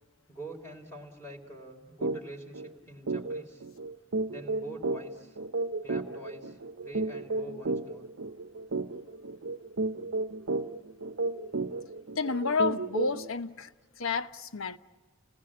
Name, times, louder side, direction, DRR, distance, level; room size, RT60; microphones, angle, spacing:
voice 1, 0.3-3.7 4.3-5.4 5.8-8.1, right 1 dB, 15° left, 3.5 m, -45 dB
sound 1, 2.0-2.2 2.5-2.7 3.1-13.3, right 3 dB, 75° right, 0.8 m, -33 dB
voice 2, 12.2-13.7 14.0-14.8, left 4 dB, 80° left, 1.0 m, -30 dB
29.5 x 20.0 x 8.6 m
head